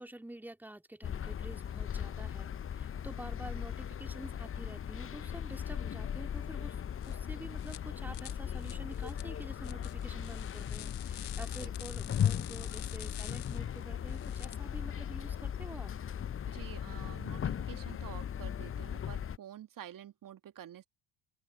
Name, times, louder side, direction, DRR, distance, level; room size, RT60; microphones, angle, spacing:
voice 1, 0.0-15.9, right 1 dB, 5° right, 2.9 m, -48 dB
sound 1, 1.0-19.4, left 9 dB, 25° left, 1.0 m, -37 dB
sound 2, 7.0-7.1 7.6-7.8 8.1-14.6, left 16 dB, 75° left, 1.9 m, -48 dB
voice 2, 16.5-20.9, right 11 dB, 40° right, 2.6 m, -49 dB
open air
figure-of-eight pair, 60°, 49 cm